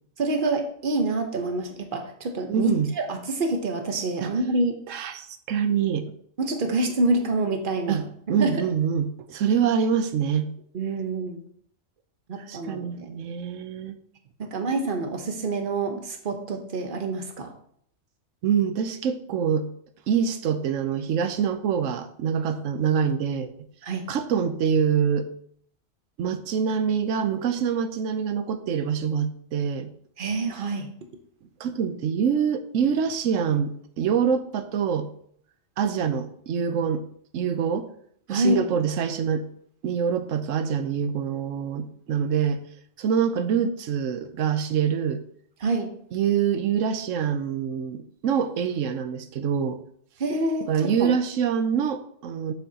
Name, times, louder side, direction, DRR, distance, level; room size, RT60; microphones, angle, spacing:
voice 1, 0.2-4.8 6.4-8.0 8.4-8.6 10.7-11.4 12.3-13.1 14.4-17.5 23.8-24.0 30.2-30.9 38.3-38.7 45.6-45.9 50.2-51.2, right 2 dB, 45° right, 4 dB, 1.1 m, -27 dB
voice 2, 2.5-2.9 4.2-4.3 4.9-6.1 7.9-10.5 12.5-14.0 18.4-19.7 20.1-23.5 24.1-25.3 26.2-29.9 31.6-35.1 35.8-37.0 37.3-37.9 38.3-39.4 39.8-42.6 43.0-45.2 46.1-49.8 50.7-52.5, right 7 dB, 85° right, 10 dB, 1.1 m, -25 dB
7.1 x 6.9 x 2.9 m, 0.64 s
omnidirectional pair, 1.3 m